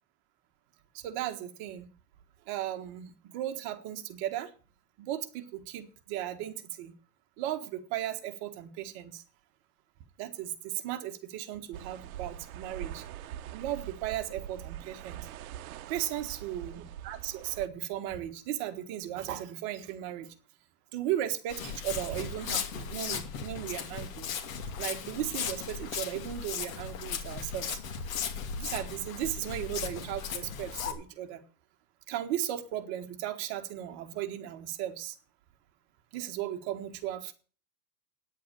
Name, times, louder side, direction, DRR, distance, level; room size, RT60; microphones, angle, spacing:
voice 1, 1.0-1.9 2.5-4.5 5.0-6.9 7.4-9.2 10.2-13.0 13.5-15.3 15.9-20.3 20.9-24.3 24.8-27.8 28.6-31.4 32.1-35.1 36.1-37.3, right 12 dB, 35° right, 1.6 m, -36 dB
sound 1, 11.7-17.7, right 11 dB, 60° right, 1.0 m, -43 dB
Walk footsteps, 21.5-30.9, left 7 dB, 55° left, 2.5 m, -37 dB
9.7 x 8.4 x 8.4 m
supercardioid pair, 165°, 49 cm